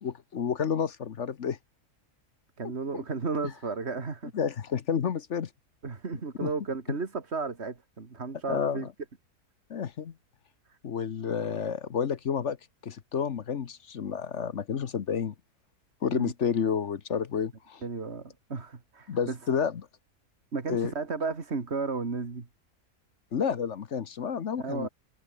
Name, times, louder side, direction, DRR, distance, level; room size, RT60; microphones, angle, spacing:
voice 1, 0.0-1.6 2.9-3.0 4.3-5.5 6.4-6.5 8.5-8.9 9.7-10.1 10.8-12.6 12.8-15.3 16.0-17.8 19.1-19.9 20.7-20.9 23.3-24.9, left 7 dB, 50° left, 1.2 m, -30 dB
voice 2, 2.6-4.3 5.8-8.9 16.1-16.3 17.8-19.4 20.5-22.5 24.6-24.9, right 4 dB, 45° right, 2.4 m, -33 dB
omnidirectional pair, 1.6 m